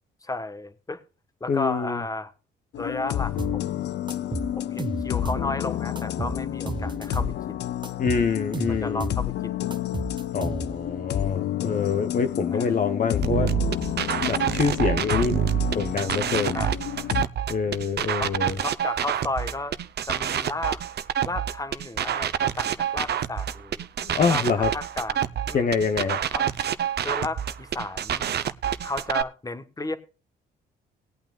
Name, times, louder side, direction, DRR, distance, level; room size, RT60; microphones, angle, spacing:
voice 1, 0.2-1.0 1.4-2.3 2.8-3.9 4.6-7.7 8.7-9.8 12.5-12.8 16.5-16.7 18.2-18.3 18.6-19.8 20.1-20.8 21.3-23.8 24.3-25.8 26.3-26.5 27.0-28.3 28.8-30.0, left 2 dB, 15° left, 1.3 m, -33 dB
voice 2, 1.5-2.0 8.0-9.1 10.3-13.5 13.9-15.4 15.7-16.6 17.5-18.6 24.0-24.7 25.5-26.2, left 5 dB, 45° left, 1.0 m, -26 dB
sound 1, 2.7-17.2, left 12 dB, 60° left, 0.5 m, -30 dB
sound 2, 3.4-3.6 4.1-5.5 6.0-7.4 7.8-9.3 9.7-10.9, right 2 dB, 25° right, 1.3 m, -33 dB
sound 3, 13.2-29.2, right 9 dB, 55° right, 0.8 m, -27 dB
20.0 x 8.7 x 2.4 m
cardioid pair, 90°, 20 cm